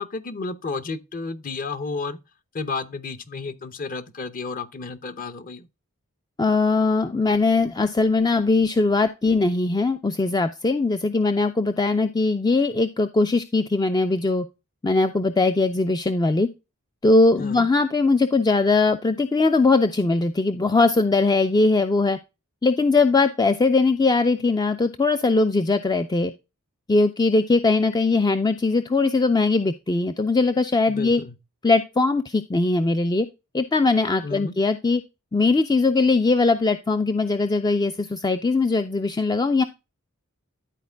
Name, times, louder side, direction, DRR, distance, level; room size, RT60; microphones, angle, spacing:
voice 1, 0.0-2.2 2.5-5.7 17.4-17.7 30.9-31.3 34.2-34.6, left 4 dB, 40° left, 0.8 m, -32 dB
voice 2, 6.4-14.5 14.8-16.5 17.0-22.2 22.6-26.3 26.9-31.2 31.6-33.3 33.5-35.0 35.3-39.6, left 3 dB, 20° left, 0.4 m, -20 dB
11.5 x 4.4 x 3.4 m
head